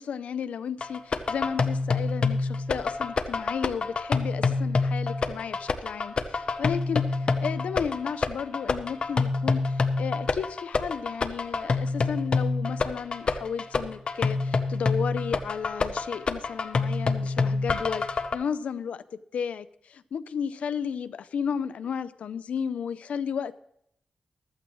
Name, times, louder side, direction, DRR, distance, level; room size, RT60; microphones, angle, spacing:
voice 1, 0.0-23.6, left 7 dB, 90° left, 15 dB, 0.5 m, -33 dB
sound 1, 0.8-18.4, left 4 dB, 50° left, 0.8 m, -27 dB
14.5 x 13.0 x 3.1 m, 0.77 s
wide cardioid pair, 110°, 2 cm